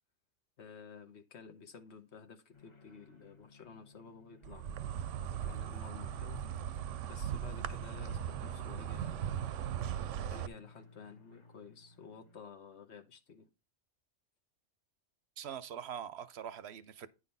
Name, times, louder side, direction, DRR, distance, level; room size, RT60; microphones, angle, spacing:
voice 1, 0.6-6.4 7.1-9.5 10.3-13.5, left 5 dB, 65° left, 1.4 m, -53 dB
Propeller plane, 2.5-12.4, left 4 dB, 25° left, 0.9 m, -55 dB
Insect, 4.4-10.5, right 10 dB, 90° right, 0.9 m, -38 dB
voice 2, 15.4-17.1, right 9 dB, 70° right, 0.8 m, -43 dB
9.8 x 4.0 x 5.4 m
omnidirectional pair, 1.2 m